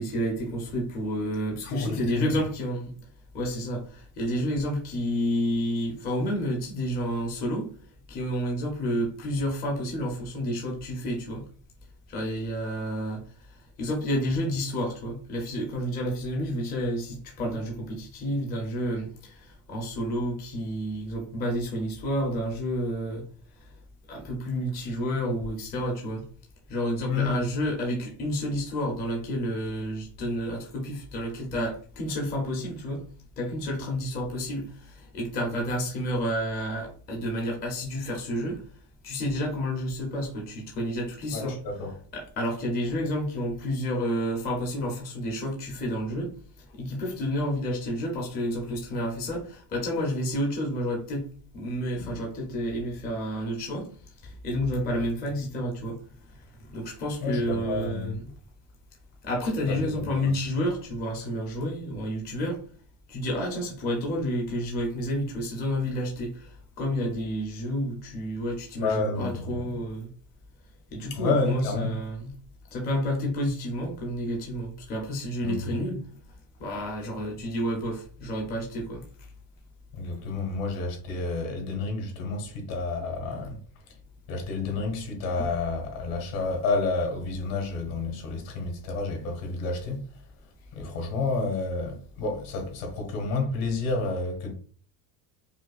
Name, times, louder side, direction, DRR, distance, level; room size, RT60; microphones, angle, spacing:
voice 1, 0.0-2.9 3.3-7.7 8.1-11.4 12.1-23.3 23.6-23.7 24.1-26.3 26.7-33.0 33.4-38.6 39.0-41.6 42.1-46.3 46.6-53.9 54.2-56.0 56.3-58.3 59.2-62.6 63.1-70.1 70.9-72.4 72.7-76.1 76.6-79.0 85.4-85.5, equal, 20° left, 0.5 m, -30 dB
voice 2, 1.6-2.4 27.1-27.4 41.3-41.9 51.9-52.2 57.2-58.2 59.7-60.3 68.8-69.8 71.1-71.9 75.4-75.7 79.9-83.6 84.3-90.1 90.7-94.5, left 3 dB, 65° left, 1.4 m, -30 dB
5.1 x 2.2 x 2.3 m
cardioid pair, 170°, 50 cm